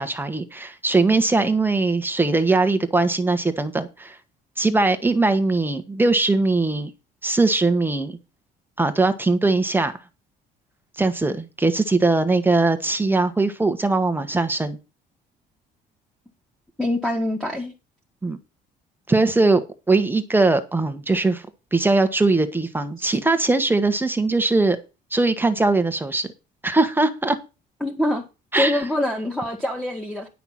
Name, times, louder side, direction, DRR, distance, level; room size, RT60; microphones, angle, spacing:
voice 1, 0.0-4.2 4.6-6.9 7.2-8.2 8.8-9.9 11.0-14.8 18.2-18.4 19.1-21.4 21.7-24.8 25.1-26.3 26.6-27.4 28.5-28.8, right 3 dB, 10° right, 1.4 m, -20 dB
voice 2, 16.8-17.7 27.8-28.2 28.6-30.3, left 1 dB, 5° left, 2.0 m, -24 dB
11.0 x 5.8 x 6.0 m
cardioid pair, 110°, 17 cm